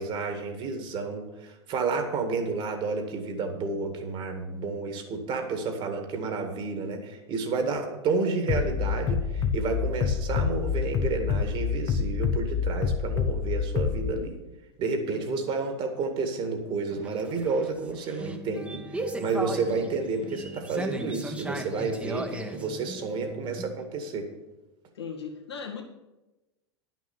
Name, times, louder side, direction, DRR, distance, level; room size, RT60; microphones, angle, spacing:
voice 1, 0.0-14.4 14.8-24.3, right 4 dB, 40° right, 5 dB, 2.1 m, -30 dB
Bass drum, 8.5-14.1, left 6 dB, 30° left, 0.8 m, -27 dB
voice 2, 15.1-15.7 24.9-25.8, left 6 dB, 75° left, -1 dB, 2.0 m, -39 dB
sound 1, 17.0-23.8, right 2 dB, 10° right, 1.2 m, -36 dB
11.0 x 6.2 x 7.2 m, 1.0 s
figure-of-eight pair, 85°, 14 cm